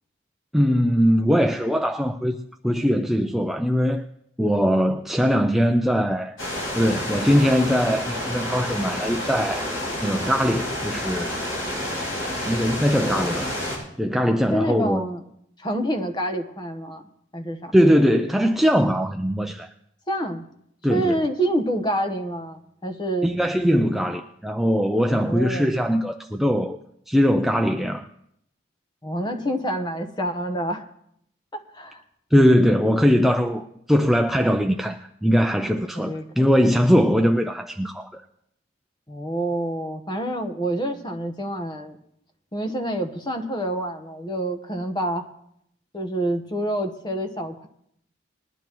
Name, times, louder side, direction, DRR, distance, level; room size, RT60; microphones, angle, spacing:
voice 1, 0.5-2.4 2.6-4.0 4.4-6.4 6.8-9.7 10.0-11.4 12.5-13.5 14.0-15.0 17.7-19.7 20.8-21.2 23.2-26.8 27.1-28.1 32.3-38.2, equal, ahead, 4 dB, 0.4 m, -21 dB
sound 1, 6.4-13.8, left 1 dB, 85° left, 7.1 m, -29 dB
voice 2, 12.9-13.3 14.5-15.2 15.6-17.0 17.3-17.7 20.1-20.4 20.9-23.4 25.1-25.7 29.0-30.8 31.5-32.0 35.9-36.5 39.1-42.0 42.5-45.3 45.9-47.7, right 1 dB, 20° left, 6 dB, 1.1 m, -27 dB
20.5 x 12.0 x 3.0 m, 0.73 s
head